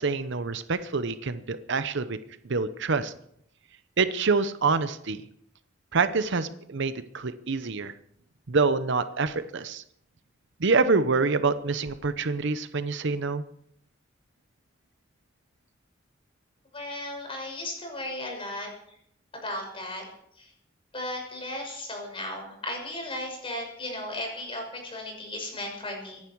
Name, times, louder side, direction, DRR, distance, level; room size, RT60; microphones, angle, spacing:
voice 1, 0.0-2.2 2.4-3.1 4.0-5.2 5.9-7.9 8.5-9.8 10.6-13.4, right 4 dB, 65° right, 12 dB, 0.8 m, -26 dB
voice 2, 16.7-18.7 19.3-20.1 20.3-20.5 20.9-26.2, left 1 dB, 30° left, 1 dB, 6.2 m, -35 dB
25.0 x 11.0 x 4.7 m, 0.70 s
head